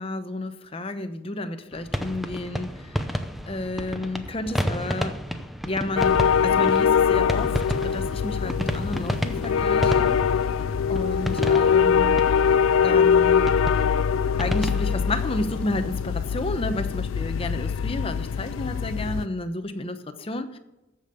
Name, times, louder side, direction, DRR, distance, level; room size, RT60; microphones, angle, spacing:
voice 1, 0.0-3.0 3.4-5.2 5.6-10.2 10.9-12.2 12.8-13.5 14.4-20.6, left 2 dB, 30° left, 8 dB, 0.8 m, -31 dB
sound 1, 1.7-15.8, equal, ahead, 0.6 m, -32 dB
sound 2, 6.0-19.3, left 7 dB, 85° left, 0.4 m, -22 dB
14.5 x 5.3 x 6.9 m, 1.0 s
head